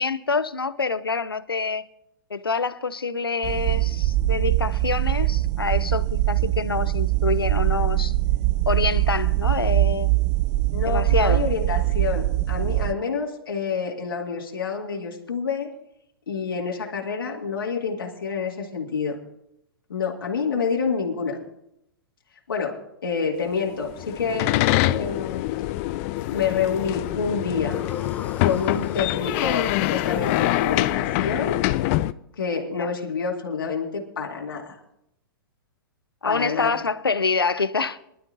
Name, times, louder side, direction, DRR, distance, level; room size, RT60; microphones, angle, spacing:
voice 1, 0.0-1.8 2.3-8.1 8.7-10.1 10.8-11.4 32.6-32.9 36.2-38.0, left 4 dB, 85° left, 0.6 m, -26 dB
sound 1, 3.4-12.9, right 17 dB, 35° right, 0.4 m, -22 dB
voice 2, 10.7-15.7 16.3-19.2 19.9-21.4 22.5-22.7 23.0-25.5 26.3-27.8 28.4-31.6 32.4-34.8 36.2-36.7, left 5 dB, 70° left, 2.3 m, -28 dB
sound 2, 23.8-32.1, left 17 dB, 40° left, 0.4 m, -25 dB
sound 3, 26.2-31.1, left 6 dB, 15° left, 1.1 m, -39 dB
24.0 x 12.0 x 2.7 m
figure-of-eight pair, 105°, 12 cm